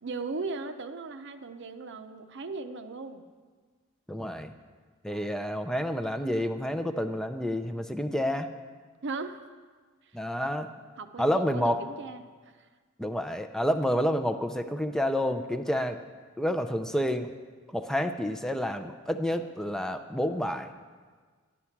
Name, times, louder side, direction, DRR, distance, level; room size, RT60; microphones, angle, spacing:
voice 1, 0.0-3.3 5.1-5.5 9.0-9.4 10.1-10.2 11.0-12.7, right 3 dB, 60° right, 9 dB, 0.7 m, -38 dB
voice 2, 4.1-4.5 5.0-8.5 10.1-10.7 11.2-11.8 13.0-16.0 16.4-17.3 17.7-20.7, equal, 5° left, 7 dB, 0.5 m, -29 dB
12.0 x 9.8 x 5.9 m, 1.5 s
head